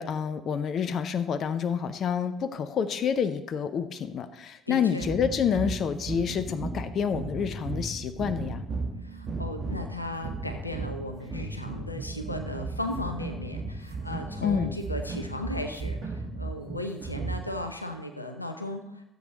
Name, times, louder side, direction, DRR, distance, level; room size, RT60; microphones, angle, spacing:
voice 1, 0.0-8.6 14.4-14.7, left 7 dB, 45° left, 12 dB, 0.6 m, -28 dB
voice 2, 4.7-5.1 9.0-19.0, left 1 dB, 90° left, 6 dB, 0.6 m, -36 dB
sound 1, 5.0-17.7, right 3 dB, 40° right, 2.3 m, -35 dB
13.0 x 8.0 x 3.9 m, 0.87 s
figure-of-eight pair, 50°, 0 cm